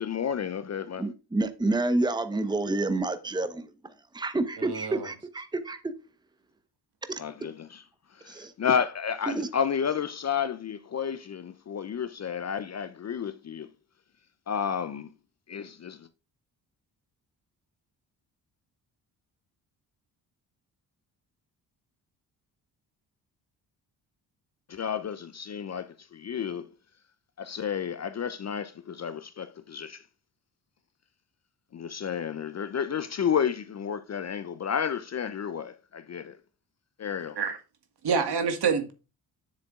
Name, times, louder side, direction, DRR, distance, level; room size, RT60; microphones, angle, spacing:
voice 1, 0.0-1.1 7.2-7.8 8.1-13.7 14.5-15.1 15.5-16.1 24.7-26.7 27.4-30.1 31.7-36.4 37.0-37.4, left 7 dB, 35° left, 0.7 m, -31 dB
voice 2, 1.0-5.9 7.1-7.2 8.3-8.5 9.3-9.5, right 2 dB, 10° right, 1.0 m, -29 dB
voice 3, 4.6-5.1 37.4-37.6 38.0-38.9, right 6 dB, 50° right, 1.8 m, -27 dB
9.6 x 7.4 x 2.5 m
hypercardioid pair, 40°, 50 cm